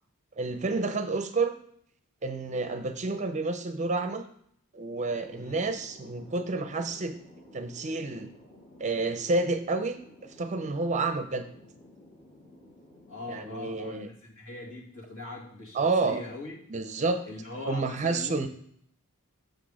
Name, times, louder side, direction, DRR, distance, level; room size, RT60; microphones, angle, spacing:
voice 1, 0.4-1.5 2.2-4.3 4.7-7.2 7.5-8.3 8.8-10.0 10.4-11.5 13.3-14.1 15.7-16.2 16.7-17.2 17.6-18.5, right 3 dB, 30° right, 9 dB, 0.6 m, -29 dB
Thunder, 5.1-14.4, left 1 dB, 45° left, 2.0 m, -54 dB
voice 2, 13.1-16.6 17.2-18.5, left 2 dB, 65° left, -3 dB, 2.2 m, -41 dB
6.6 x 5.9 x 4.9 m, 0.66 s
head